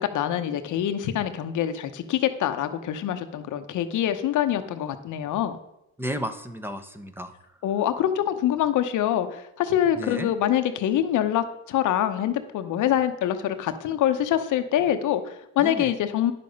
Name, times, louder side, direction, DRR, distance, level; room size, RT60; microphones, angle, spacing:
voice 1, 0.0-5.6 7.6-16.3, left 11 dB, 80° left, 9 dB, 0.9 m, -25 dB
voice 2, 6.0-7.3 10.0-10.3 15.6-15.9, equal, 5° right, 8 dB, 0.9 m, -33 dB
9.8 x 6.8 x 5.3 m, 0.82 s
cardioid pair, 90°, 30 cm